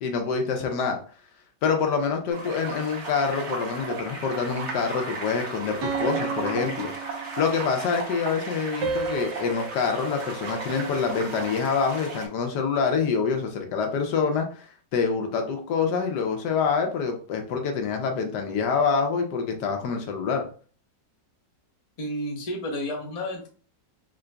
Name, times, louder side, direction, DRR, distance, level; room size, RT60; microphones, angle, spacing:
voice 1, 0.0-1.0 1.6-6.9 7.4-14.6 14.9-20.5, left 5 dB, 75° left, 4 dB, 1.2 m, -26 dB
sound 1, 2.3-12.3, right 3 dB, 50° right, 0.9 m, -35 dB
sound 2, 5.8-7.8 8.8-11.2, right 6 dB, 75° right, 1.3 m, -33 dB
voice 2, 22.0-23.5, equal, 35° left, 0 dB, 0.6 m, -31 dB
3.8 x 3.7 x 2.2 m, 0.40 s
omnidirectional pair, 1.9 m